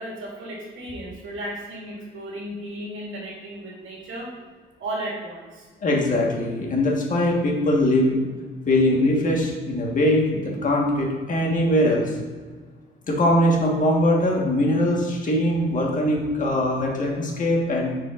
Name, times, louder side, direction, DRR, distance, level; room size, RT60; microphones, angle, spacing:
voice 1, 0.0-4.3 4.8-5.7, right 1 dB, 85° right, -4 dB, 2.0 m, -34 dB
voice 2, 5.8-8.2 8.7-12.1 13.1-17.9, left 1 dB, 40° left, -1 dB, 1.4 m, -21 dB
9.8 x 4.9 x 2.5 m, 1.5 s
cardioid pair, 140°, 20 cm